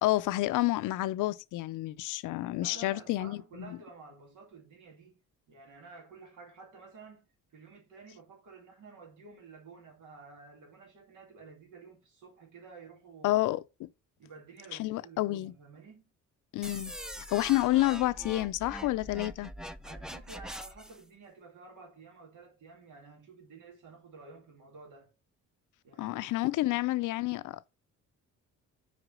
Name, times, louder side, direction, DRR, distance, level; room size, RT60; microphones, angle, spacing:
voice 1, 0.0-3.4 3.7-3.8 13.2-13.9 14.8-15.5 16.5-19.5 26.0-27.7, left 17 dB, 85° left, 0.5 m, -29 dB
voice 2, 2.6-5.2 5.5-7.3 7.5-13.4 14.2-16.1 19.8-25.1 25.8-26.2 26.6-26.8, right 4 dB, 75° right, 2.5 m, -52 dB
sound 1, 16.6-21.0, equal, ahead, 0.5 m, -43 dB
5.0 x 4.9 x 6.2 m
cardioid pair, 90°, 30 cm